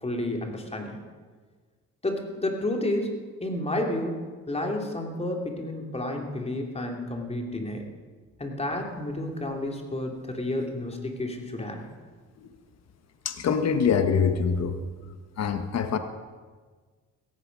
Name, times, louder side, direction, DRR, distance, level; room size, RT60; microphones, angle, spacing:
voice 1, 0.0-1.0 2.0-7.9 8.4-11.8, left 1 dB, 20° left, 2 dB, 3.0 m, -31 dB
voice 2, 13.2-14.8 15.4-16.0, left 6 dB, 60° left, 8 dB, 1.4 m, -24 dB
16.5 x 15.0 x 5.4 m, 1.5 s
cardioid pair, 90°, 30 cm